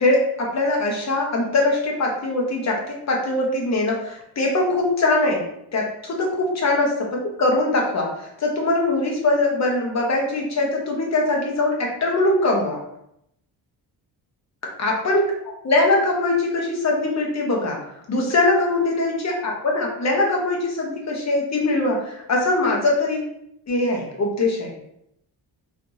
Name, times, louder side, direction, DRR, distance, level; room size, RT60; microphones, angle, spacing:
voice 1, 0.0-12.8 14.8-15.3 15.6-23.3 23.7-24.7, left 2 dB, 40° left, -1 dB, 1.1 m, -22 dB
4.2 x 3.1 x 2.7 m, 0.77 s
cardioid pair, 120°, 42 cm